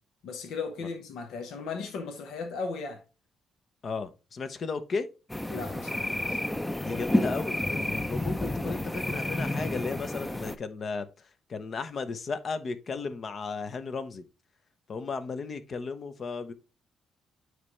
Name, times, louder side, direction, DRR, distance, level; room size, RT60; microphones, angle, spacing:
voice 1, 0.2-3.0 5.5-6.4, left 4 dB, 80° left, 1.1 m, -36 dB
voice 2, 3.8-5.1 6.8-14.2 14.9-16.5, left 4 dB, 50° left, 0.9 m, -35 dB
sound 1, 5.3-10.6, left 1 dB, 10° left, 0.6 m, -30 dB
9.4 x 3.3 x 3.1 m
cardioid pair, 90°, 0 cm